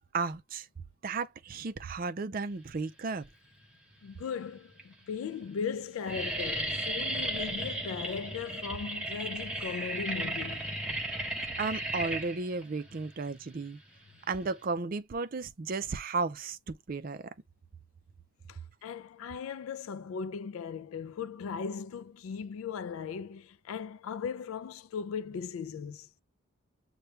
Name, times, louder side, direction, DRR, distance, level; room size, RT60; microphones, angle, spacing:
voice 1, 0.1-0.7 1.0-3.2 11.6-13.8 14.3-17.2, right 4 dB, 45° right, 0.4 m, -34 dB
sound 1, 3.5-4.0 4.7-4.8 5.1-5.5 5.7-14.6, right 1 dB, 5° right, 1.0 m, -35 dB
voice 2, 4.0-10.7 18.5-26.1, left 6 dB, 80° left, 0.3 m, -38 dB
6.7 x 2.2 x 3.2 m
head